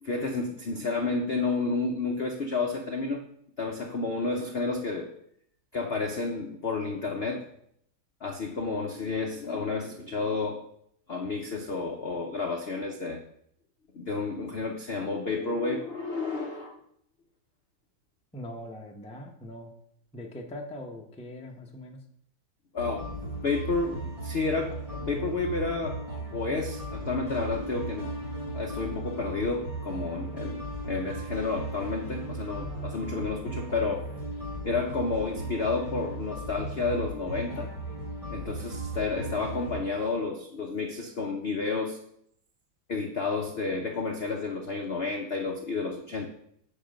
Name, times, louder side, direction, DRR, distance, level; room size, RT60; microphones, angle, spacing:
voice 1, 0.0-3.2 3.6-5.1 5.7-7.4 8.2-10.6 11.1-13.2 13.9-16.8 22.7-26.0 26.3-28.1 28.5-34.1 34.6-37.7 38.3-42.0 42.9-46.3, left 3 dB, 60° left, 3 dB, 0.6 m, -31 dB
voice 2, 18.3-19.7 20.1-22.0, left 1 dB, 5° left, 1 dB, 0.5 m, -41 dB
sound 1, 22.8-39.8, right 2 dB, 15° right, 3.8 m, -36 dB
8.6 x 5.4 x 5.1 m, 0.71 s
omnidirectional pair, 2.1 m